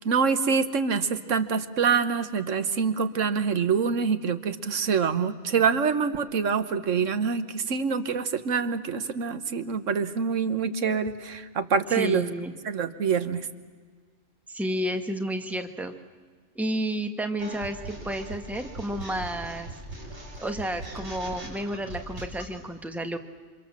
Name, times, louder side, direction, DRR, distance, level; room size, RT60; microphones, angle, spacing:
voice 1, 0.0-12.3 12.6-13.5, right 6 dB, 80° right, 11 dB, 1.4 m, -25 dB
voice 2, 11.9-12.5 14.5-15.9 16.5-19.7 20.4-23.2, right 1 dB, ahead, 6 dB, 1.3 m, -31 dB
sound 1, 17.4-22.5, right 1 dB, 60° right, 4.5 m, -40 dB
28.0 x 25.5 x 7.4 m, 1.5 s
omnidirectional pair, 1.3 m